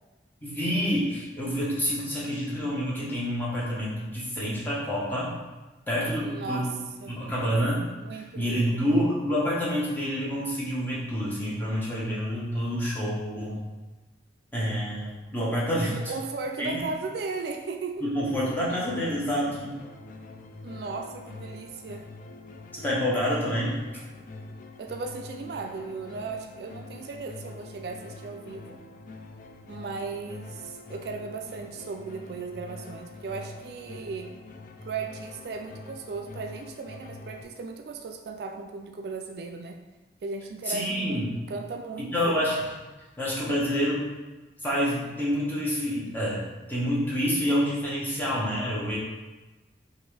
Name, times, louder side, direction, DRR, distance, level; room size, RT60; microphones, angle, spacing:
voice 1, 0.4-5.3 5.9-6.7 7.1-13.6 14.5-16.0 16.6-16.8 18.0-19.8 22.7-24.0 40.6-41.3 42.1-42.6 43.2-44.1 44.6-46.4 46.7-49.0, equal, 10° left, -7 dB, 1.0 m, -28 dB
voice 2, 6.2-6.7 7.0-7.2 7.9-8.8 15.9-18.0 20.6-22.1 24.8-28.8 29.7-34.4 34.8-39.8 40.2-42.4, right 4 dB, 60° right, 4 dB, 0.3 m, -36 dB
sound 1, 18.3-37.4, left 2 dB, 45° left, 0.3 m, -44 dB
5.2 x 2.6 x 3.2 m, 1.2 s
head